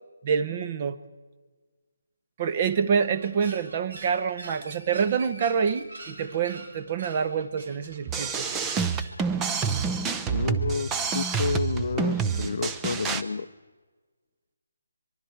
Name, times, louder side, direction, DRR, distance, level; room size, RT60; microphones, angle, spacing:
voice 1, 0.2-1.0 2.4-8.5, right 6 dB, 30° right, 13 dB, 1.0 m, -27 dB
sound 1, 2.5-9.2, right 2 dB, 75° right, 5.4 m, -45 dB
sound 2, 8.1-13.2, right 5 dB, 10° right, 0.7 m, -28 dB
voice 2, 10.3-13.5, left 4 dB, 55° left, 14 dB, 0.7 m, -30 dB
24.0 x 23.5 x 4.7 m, 1.3 s
hypercardioid pair, 170°, 0 cm